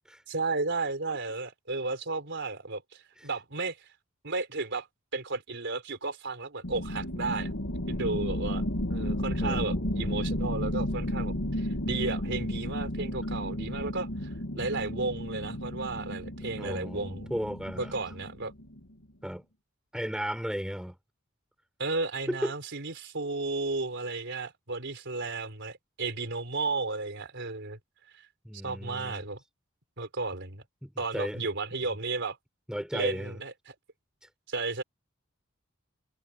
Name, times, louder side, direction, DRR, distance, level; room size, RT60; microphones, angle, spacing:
voice 1, 0.3-3.9 4.2-4.9 5.1-7.5 7.9-17.3 17.8-18.5 21.8-27.8 28.1-28.3 28.6-29.4 30.0-30.6 31.0-32.4 32.9-33.7 34.5-34.8, right 3 dB, 60° right, 4.0 m, -33 dB
sound 1, 6.6-18.9, left 1 dB, 70° left, 2.6 m, -33 dB
voice 2, 9.4-10.2 16.4-17.9 19.2-19.4 19.9-21.0 22.3-22.5 28.4-29.2 30.8-31.5 32.7-33.3, equal, 5° right, 5.0 m, -35 dB
head